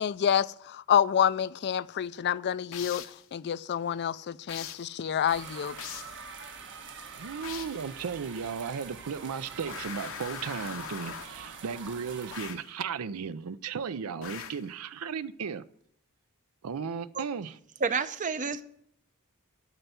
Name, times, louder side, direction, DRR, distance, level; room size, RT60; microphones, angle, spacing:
voice 1, 0.0-3.0 3.3-5.8, left 9 dB, 50° left, 0.4 m, -28 dB
sound 1, 2.7-3.2 4.5-4.9 5.8-6.2 7.4-7.9 9.7-11.4 12.3-12.7 14.2-14.7, left 8 dB, 65° left, 0.8 m, -41 dB
sound 2, 5.3-12.5, right 5 dB, 55° right, 1.2 m, -45 dB
voice 2, 7.2-15.6 16.6-17.6, right 6 dB, 70° right, 0.5 m, -35 dB
voice 3, 17.8-18.6, right 5 dB, 35° right, 0.7 m, -29 dB
12.0 x 5.5 x 9.1 m
head